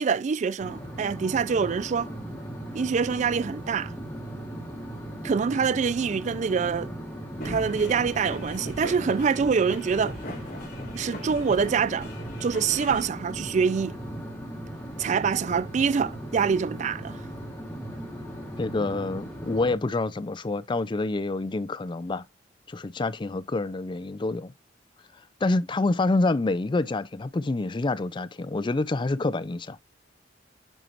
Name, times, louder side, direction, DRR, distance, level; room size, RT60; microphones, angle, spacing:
voice 1, 0.0-2.1 2.7-3.9 5.2-6.9 7.4-10.2 10.9-12.1 12.4-14.0 15.0-17.2, right 6 dB, 40° right, 0.3 m, -25 dB
sound 1, 0.6-19.7, right 1 dB, 10° left, 2.5 m, -38 dB
sound 2, 7.4-13.1, left 1 dB, 55° left, 3.3 m, -40 dB
voice 2, 18.6-22.2 22.7-24.5 25.4-29.8, left 2 dB, 25° left, 0.4 m, -27 dB
9.1 x 4.4 x 2.5 m
head